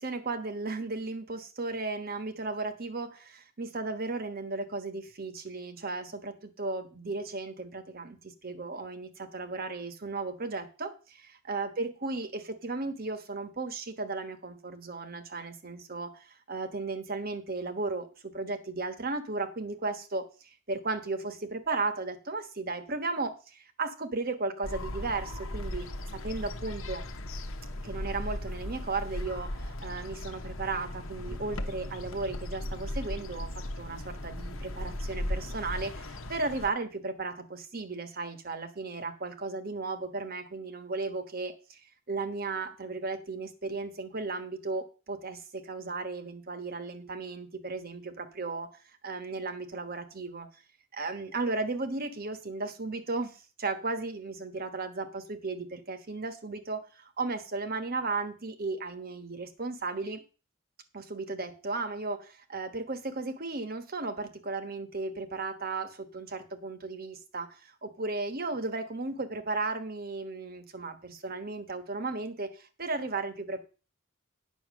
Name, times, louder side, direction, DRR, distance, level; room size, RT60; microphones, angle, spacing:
voice 1, 0.0-20.3 20.7-27.0 27.8-41.8 42.1-48.7 49.0-50.5 50.9-60.2 60.9-73.6, right 3 dB, 45° right, 10 dB, 1.2 m, -35 dB
sound 1, 24.6-36.7, left 1 dB, 65° left, 1.1 m, -37 dB
9.4 x 6.2 x 6.2 m, 0.34 s
head